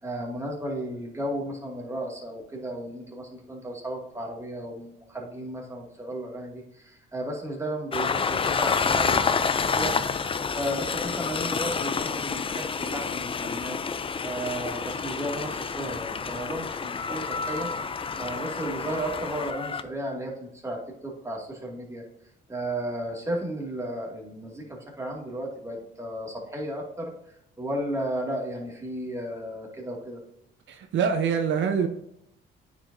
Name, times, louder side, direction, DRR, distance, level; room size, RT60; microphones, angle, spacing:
voice 1, 0.0-10.0 10.5-13.8 14.2-17.7 18.2-22.0 22.5-27.1 27.6-30.2, right 1 dB, 15° right, -1 dB, 2.3 m, -34 dB
Train, 7.9-19.8, left 5 dB, 25° left, 0.4 m, -28 dB
voice 2, 30.7-31.9, right 6 dB, 70° right, 5 dB, 0.7 m, -25 dB
9.5 x 5.0 x 2.7 m, 0.79 s
cardioid pair, 90°, 20 cm